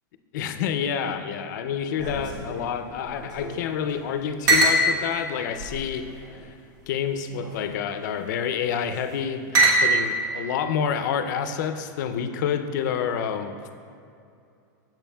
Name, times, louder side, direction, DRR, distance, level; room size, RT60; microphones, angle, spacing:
voice 1, 0.3-6.5 6.9-13.7, left 7 dB, 70° left, 8 dB, 0.4 m, -28 dB
sound 1, 1.9-3.6 3.9-4.0 4.5-4.8 5.6-6.4 7.3-7.7 8.6-9.0 9.5-10.2, right 2 dB, 75° right, 1.1 m, -23 dB
7.4 x 7.1 x 2.2 m, 2.5 s
supercardioid pair, 145°, 10 cm